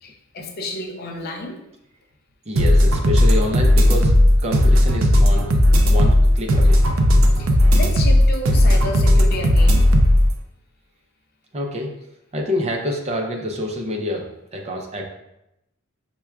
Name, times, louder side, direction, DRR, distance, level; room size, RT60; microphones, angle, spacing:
voice 1, 0.0-1.6 7.4-9.9 12.6-12.7, left 2 dB, 50° left, 2 dB, 0.5 m, -31 dB
voice 2, 2.5-4.1 4.4-5.5 5.9-6.8 11.5-11.9 12.3-15.0, left 1 dB, 35° right, 1 dB, 0.5 m, -27 dB
sound 1, 2.6-10.3, left 1 dB, 90° right, 0.5 m, -15 dB
5.8 x 2.2 x 2.3 m, 0.85 s
head